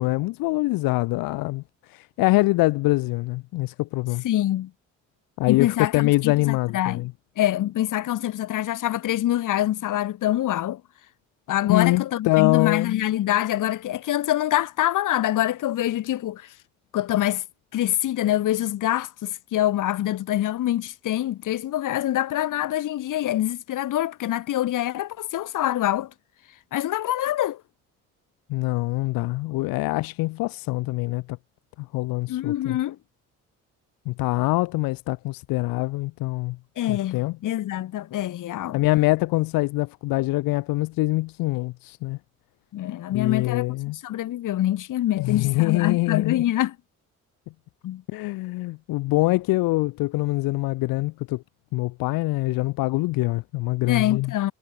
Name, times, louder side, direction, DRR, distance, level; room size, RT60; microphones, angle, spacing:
voice 1, 0.0-1.6 1.9-4.2 5.4-7.1 11.7-13.0 28.5-31.4 31.8-32.8 34.1-36.6 36.9-37.3 38.7-42.2 43.1-44.0 45.2-46.4 48.1-51.4 51.7-54.3, left 21 dB, 85° left, 0.7 m, -24 dB
voice 2, 4.2-4.7 5.5-7.0 7.4-10.8 11.5-16.5 16.9-17.4 17.7-26.1 26.7-27.6 32.3-33.0 36.8-38.8 42.7-43.6 44.0-46.7 47.8-48.0 53.9-54.5, left 13 dB, 65° left, 1.0 m, -25 dB
supercardioid pair, 70°, 34 cm